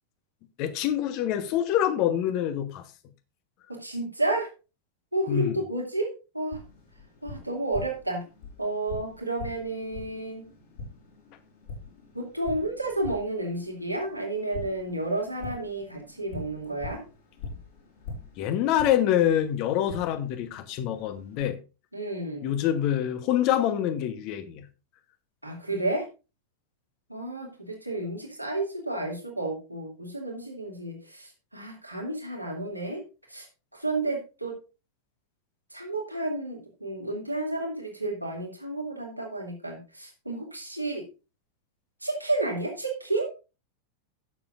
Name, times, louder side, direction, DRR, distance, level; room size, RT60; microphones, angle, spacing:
voice 1, 0.6-2.8 5.3-5.5 18.4-21.6 22.4-24.6, left 11 dB, 40° left, 11 dB, 1.2 m, -26 dB
voice 2, 3.7-4.5 5.1-6.6 7.2-8.2 8.6-10.5 12.1-17.0 21.9-22.5 25.4-26.1 27.1-33.0 33.3-33.5 33.7-34.6 35.7-41.0 42.0-43.3, right 2 dB, 85° right, 0 dB, 2.7 m, -31 dB
Tap, 6.5-21.4, left 3 dB, 60° left, 5.4 m, -44 dB
16.0 x 7.1 x 2.6 m, 0.30 s
figure-of-eight pair, 90°, 0 cm